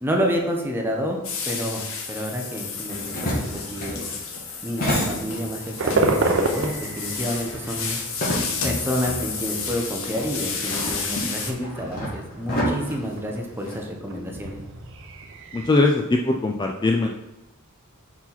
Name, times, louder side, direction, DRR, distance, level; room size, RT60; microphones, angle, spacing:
voice 1, 0.0-1.2 1.5-4.1 4.6-8.0 8.6-14.6, equal, 10° right, 1 dB, 0.9 m, -29 dB
sound 1, 1.2-11.5, left 5 dB, 65° left, 0.9 m, -31 dB
sound 2, 2.9-5.7 6.0-8.9 9.2-9.3 10.1-13.8, equal, 40° left, 2.0 m, -30 dB
sound 3, 5.8-15.7, right 2 dB, 60° right, 0.7 m, -31 dB
voice 2, 15.5-17.1, left 2 dB, 20° left, 2 dB, 0.3 m, -21 dB
5.7 x 4.7 x 4.0 m, 0.96 s
head